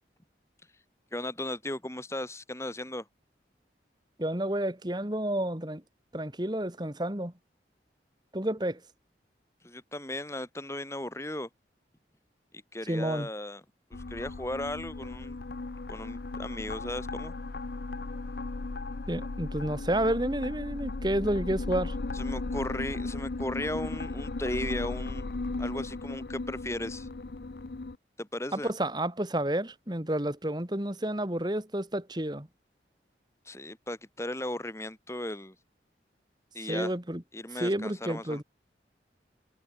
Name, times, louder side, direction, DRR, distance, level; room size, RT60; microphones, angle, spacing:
voice 1, 1.1-3.1 9.6-11.5 12.7-13.6 14.1-15.4 15.9-17.3 22.1-25.3 25.6-27.1 28.2-28.7 33.5-35.6 36.5-36.9 37.3-38.4, left 1 dB, 15° left, 3.6 m, -36 dB
voice 2, 4.2-5.8 6.1-7.3 8.3-8.8 12.9-13.3 19.1-22.0 28.5-32.5 36.7-37.2 37.5-38.4, right 1 dB, 25° right, 2.1 m, -30 dB
sound 1, 13.9-28.0, left 3 dB, 65° left, 0.7 m, -36 dB
head